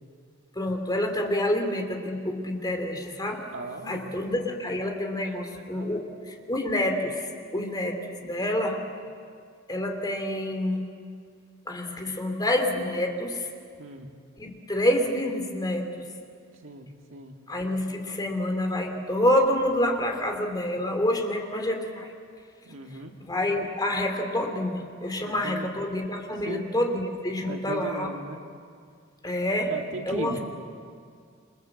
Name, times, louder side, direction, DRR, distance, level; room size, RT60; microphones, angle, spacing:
voice 1, 0.5-3.5 3.8-8.8 9.7-10.8 11.7-13.5 14.4-16.0 17.5-22.1 23.2-28.1 29.2-29.7 30.1-30.4, left 1 dB, 20° left, 4 dB, 3.0 m, -27 dB
voice 2, 3.3-4.0 5.0-6.0 13.8-14.1 16.6-17.3 22.7-23.1 25.2-25.7 26.4-26.7 27.4-28.4 29.6-30.4, right 2 dB, 70° right, 2 dB, 2.4 m, -38 dB
27.5 x 27.0 x 7.8 m, 2.2 s
head